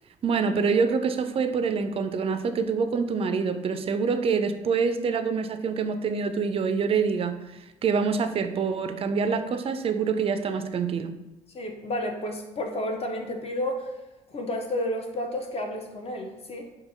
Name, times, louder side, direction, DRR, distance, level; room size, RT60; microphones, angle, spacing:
voice 1, 0.2-7.4 7.8-11.1, right 5 dB, 30° right, 9 dB, 0.3 m, -26 dB
voice 2, 11.5-13.9 14.3-16.7, left 1 dB, 35° left, 3 dB, 0.6 m, -31 dB
4.6 x 2.5 x 2.6 m, 0.98 s
hypercardioid pair, 50°, 18 cm